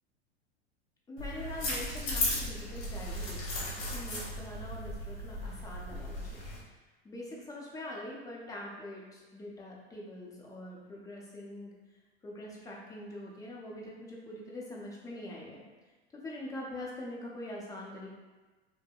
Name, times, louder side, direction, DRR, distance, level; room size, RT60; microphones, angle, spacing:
voice 1, 1.1-6.4 7.0-11.7 12.2-15.6 16.1-18.2, left 1 dB, 10° left, -3 dB, 0.5 m, -43 dB
sound 1, 1.2-6.6, left 1 dB, 55° left, 1.0 m, -36 dB
2.7 x 2.6 x 2.3 m, 1.3 s
hypercardioid pair, 105°, 33 cm